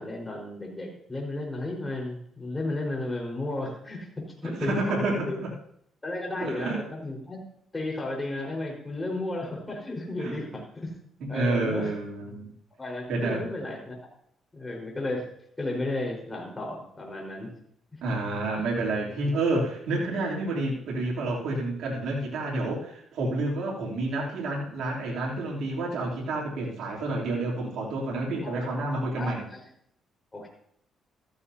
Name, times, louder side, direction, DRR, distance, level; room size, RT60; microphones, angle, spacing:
voice 1, 0.0-5.4 6.0-7.4 7.7-10.9 11.3-11.9 12.8-14.0 14.5-15.2 15.6-17.5 28.4-29.6 30.3-30.5, left 2 dB, 20° left, 0 dB, 4.6 m, -33 dB
voice 2, 4.4-5.5 6.4-6.8 10.2-10.4 11.2-12.5 13.1-13.4 18.0-29.4, right 2 dB, 75° right, -3 dB, 3.1 m, -29 dB
14.5 x 14.0 x 2.8 m, 0.69 s
cardioid pair, 90°, 0 cm